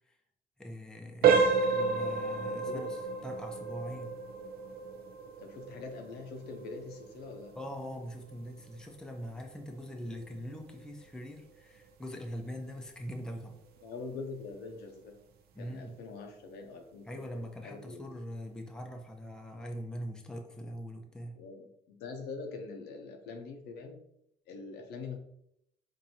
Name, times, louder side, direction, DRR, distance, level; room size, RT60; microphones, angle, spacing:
voice 1, 0.6-4.1 7.5-13.6 15.5-16.0 17.0-21.4, equal, 5° left, 2 dB, 0.5 m, -42 dB
sound 1, 1.2-11.9 12.3-12.5 13.1-13.2 13.7-13.8, right 5 dB, 65° right, 0.5 m, -32 dB
voice 2, 2.4-2.9 5.4-7.5 13.8-15.2 15.6-18.2 21.3-24.0 24.5-25.2, left 4 dB, 75° left, 4 dB, 0.6 m, -44 dB
4.5 x 2.6 x 2.7 m, 0.77 s
cardioid pair, 110°, 17 cm